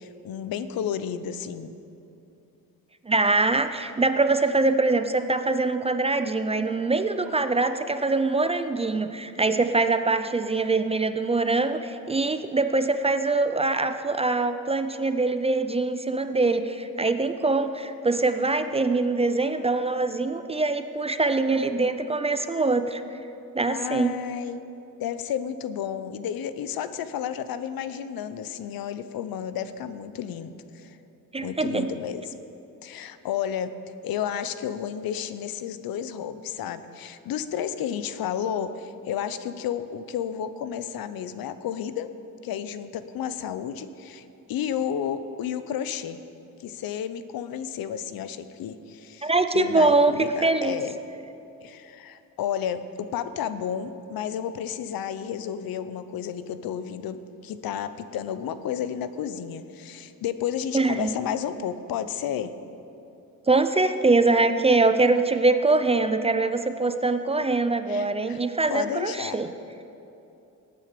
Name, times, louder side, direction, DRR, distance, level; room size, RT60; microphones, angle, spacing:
voice 1, 0.0-1.7 23.7-24.6 25.0-31.0 31.4-32.2 32.8-33.8 34.0-42.1 42.4-46.2 46.6-51.0 51.6-62.5 67.9-68.4 68.7-69.4, left 9 dB, 80° left, 12 dB, 0.7 m, -32 dB
voice 2, 3.1-23.0 23.5-24.1 31.3-31.9 49.2-50.8 60.7-61.1 63.5-69.5, right 3 dB, 20° right, 9 dB, 0.4 m, -23 dB
18.5 x 9.2 x 5.1 m, 2.8 s
cardioid pair, 155°, 35 cm